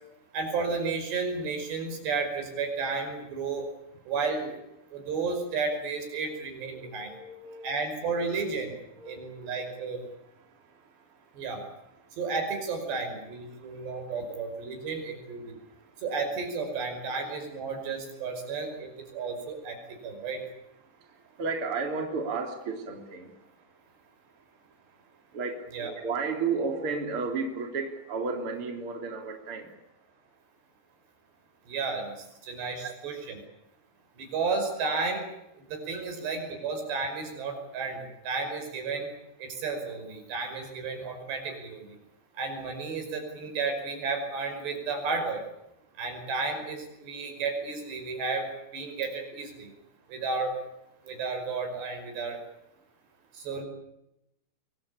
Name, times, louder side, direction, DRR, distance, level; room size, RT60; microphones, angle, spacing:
voice 1, 0.3-3.7 4.1-4.6 4.9-7.2 7.6-8.7 9.0-10.0 11.4-11.6 12.2-15.6 16.0-20.4 25.7-25.9 31.7-33.4 34.2-35.2 35.6-39.1 39.4-42.0 42.4-45.4 46.0-49.7 50.1-50.5 51.1-52.4 53.3-53.6, right 4 dB, 85° right, 5 dB, 7.6 m, -32 dB
voice 2, 6.6-7.9 8.2-8.3 9.0-9.3 21.4-23.3 25.3-29.7 32.8-32.9, right 4 dB, 35° right, 2 dB, 3.8 m, -33 dB
24.0 x 22.5 x 8.8 m, 0.86 s
omnidirectional pair, 4.8 m